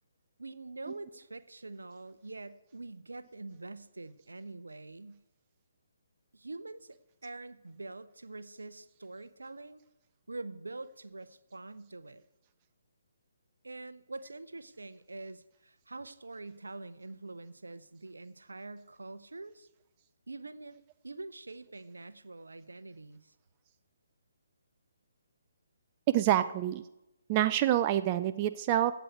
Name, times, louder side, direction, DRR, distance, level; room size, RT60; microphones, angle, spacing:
voice 1, 0.4-5.2 6.3-9.8 10.3-12.2 13.6-19.7 20.3-20.8 21.0-23.3, right 2 dB, 75° right, 13 dB, 0.6 m, -45 dB
voice 2, 26.1-26.8 27.3-29.0, right 12 dB, 30° right, 11 dB, 0.4 m, -27 dB
15.5 x 8.0 x 4.6 m, 0.94 s
figure-of-eight pair, 135°, 0 cm